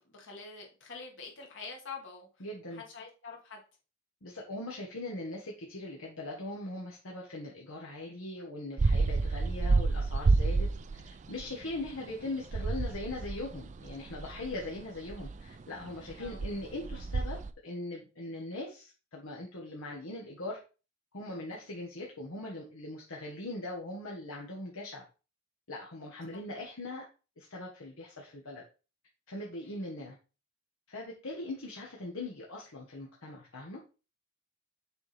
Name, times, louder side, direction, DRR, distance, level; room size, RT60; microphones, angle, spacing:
voice 1, 0.0-2.5 2.7-3.6 16.2-16.4 26.3-26.4 29.6-29.8, left 4 dB, 65° left, 1 dB, 1.9 m, -46 dB
voice 2, 2.4-2.8 4.2-10.7 11.3-20.6 21.1-25.0 25.7-27.0 27.4-28.6 29.3-30.2 30.9-33.8, left 2 dB, 80° left, -3 dB, 1.3 m, -40 dB
sound 1, 8.8-17.5, right 3 dB, 35° right, 0.4 m, -30 dB
6.9 x 4.2 x 3.4 m, 0.33 s
head